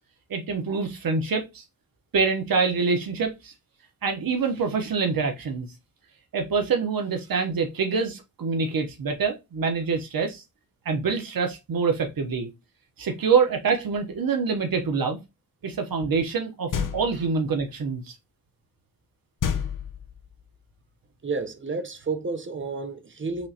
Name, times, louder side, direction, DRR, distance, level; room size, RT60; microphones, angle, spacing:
voice 1, 0.3-1.6 2.1-3.5 4.0-5.7 6.3-10.4 10.8-12.5 13.0-15.2 15.6-18.1, right 5 dB, 70° right, 1.0 m, -25 dB
sound 1, 16.7-17.4 19.4-20.4, left 7 dB, 60° left, 0.8 m, -29 dB
voice 2, 21.2-23.5, right 4 dB, 35° right, 0.8 m, -31 dB
6.2 x 3.0 x 2.8 m
wide cardioid pair, 130°, 36 cm